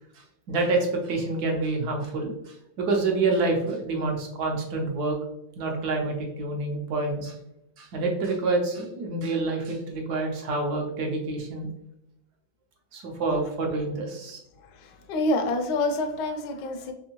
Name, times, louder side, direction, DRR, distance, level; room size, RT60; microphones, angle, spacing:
voice 1, 0.2-5.2 5.6-7.3 7.8-11.7 12.9-14.4, right 3 dB, 65° right, 2 dB, 1.1 m, -27 dB
voice 2, 14.8-16.9, left 2 dB, 75° left, 5 dB, 1.1 m, -27 dB
3.5 x 3.3 x 2.9 m, 0.83 s
omnidirectional pair, 2.1 m